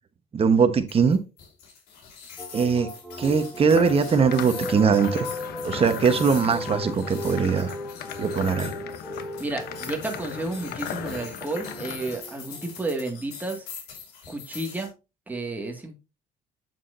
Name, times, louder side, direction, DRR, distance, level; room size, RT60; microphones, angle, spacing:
voice 1, 0.3-1.2 2.5-2.9 3.2-5.3 5.6-7.7 8.2-8.7, right 5 dB, 35° right, 1.2 m, -21 dB
sound 1, 0.9-14.9, left 6 dB, 85° left, 4.2 m, -43 dB
sound 2, 2.4-13.1, left 1 dB, 5° left, 2.0 m, -37 dB
sound 3, 3.7-12.2, left 8 dB, 70° left, 1.1 m, -37 dB
voice 2, 9.4-13.7 14.3-14.9 15.3-16.0, right 2 dB, 10° right, 2.1 m, -31 dB
8.1 x 7.3 x 2.7 m
cardioid pair, 110°, 17 cm